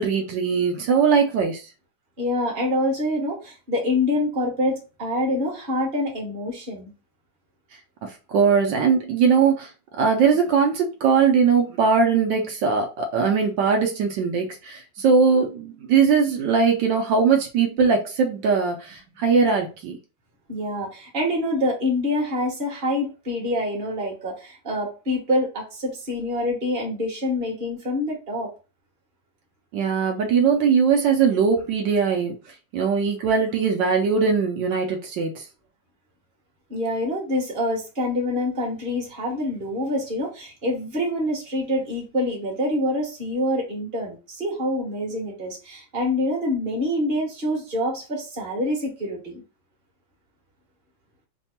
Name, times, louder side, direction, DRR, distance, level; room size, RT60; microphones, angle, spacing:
voice 1, 0.0-1.7 8.0-9.7 10.0-20.0 29.7-32.3 32.7-35.4, right 5 dB, 75° right, 1.3 m, -20 dB
voice 2, 2.2-6.9 20.5-28.5 36.7-49.4, left 1 dB, 30° right, 1.3 m, -26 dB
3.4 x 2.2 x 4.1 m
omnidirectional pair, 2.1 m